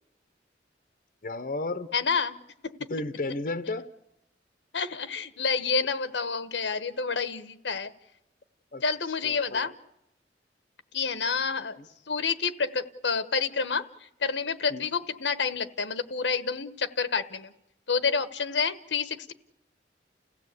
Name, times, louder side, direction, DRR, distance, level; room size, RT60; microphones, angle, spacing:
voice 1, 1.2-1.9 2.9-3.9 8.7-8.8 9.2-9.7 11.8-11.9 14.7-14.8, left 2 dB, 50° left, 12 dB, 0.8 m, -33 dB
voice 2, 1.9-2.4 2.6-2.7 4.7-7.9 8.8-9.7 10.9-11.8 12.1-13.8 14.2-17.5 17.9-19.3, left 5 dB, 90° left, 12 dB, 1.2 m, -28 dB
29.5 x 16.0 x 8.3 m, 0.85 s
head